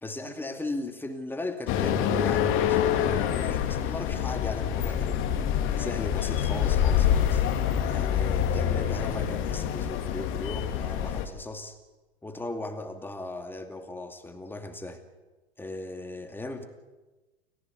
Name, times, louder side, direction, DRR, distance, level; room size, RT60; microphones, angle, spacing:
voice 1, 0.0-5.3 5.8-7.4 7.9-11.8 12.2-15.0 15.6-16.7, left 2 dB, 5° left, 6 dB, 2.5 m, -37 dB
sound 1, 1.7-11.3, left 9 dB, 40° left, 2.6 m, -26 dB
29.0 x 15.5 x 8.3 m, 1.2 s
figure-of-eight pair, 100°, 33 cm